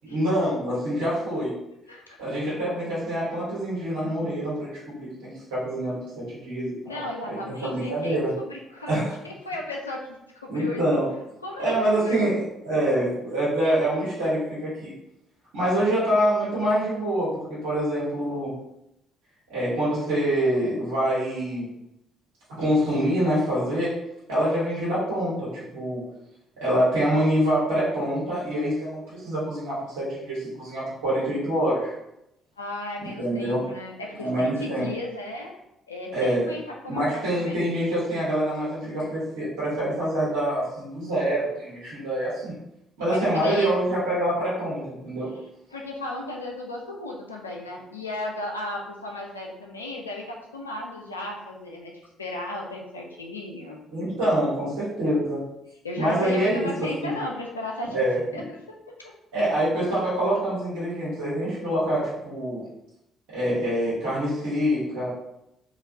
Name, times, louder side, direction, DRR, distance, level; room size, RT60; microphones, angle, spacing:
voice 1, 0.0-1.6 2.2-4.7 4.9-7.0 7.3-8.3 8.9-9.1 10.5-11.1 11.6-14.9 15.5-18.6 19.5-21.7 22.5-24.0 24.3-26.0 26.6-31.9 33.2-33.7 34.2-34.9 36.1-36.5 36.9-42.6 43.0-45.3 53.9-55.4 56.0-57.2 57.9-58.2 59.3-62.6 63.3-65.1, right 1 dB, 70° right, -9 dB, 1.0 m, -25 dB
voice 2, 1.9-2.2 6.9-8.9 9.2-10.8 11.4-12.3 32.6-35.5 35.9-37.6 43.1-43.8 45.7-53.8 55.8-58.0 58.3-58.6 59.0-59.1, left 2 dB, 90° left, -1 dB, 0.3 m, -35 dB
3.0 x 2.3 x 2.7 m, 0.85 s
figure-of-eight pair, 45°, 0 cm